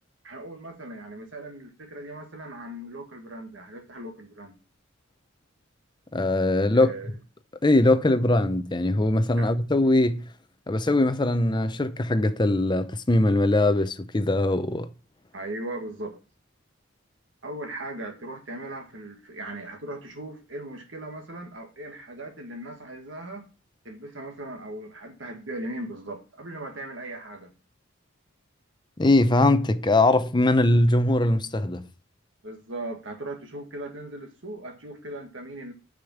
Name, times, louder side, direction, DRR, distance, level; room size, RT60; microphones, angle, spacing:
voice 1, 0.2-4.6 6.7-7.1 9.4-9.5 15.3-16.2 17.4-23.5 23.8-27.5 32.4-35.7, right 1 dB, 65° right, 1.7 m, -38 dB
voice 2, 6.1-6.9 7.6-10.3 10.7-14.9 29.0-31.9, left 2 dB, 20° left, 0.6 m, -21 dB
6.7 x 5.2 x 7.1 m
head